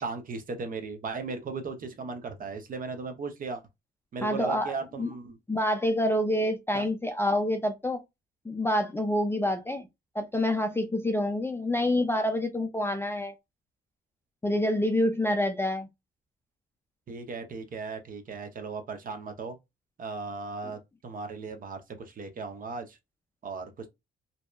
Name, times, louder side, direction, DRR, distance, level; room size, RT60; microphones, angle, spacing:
voice 1, 0.0-3.6 4.1-5.4 6.7-6.8 17.1-19.6 20.0-23.0 23.4-23.9, right 4 dB, 45° right, 0.6 m, -37 dB
voice 2, 4.2-5.1 5.5-8.0 8.5-9.9 10.1-13.3 14.4-15.9, left 1 dB, 10° left, 0.3 m, -27 dB
2.7 x 2.1 x 2.2 m
cardioid pair, 90°, 20 cm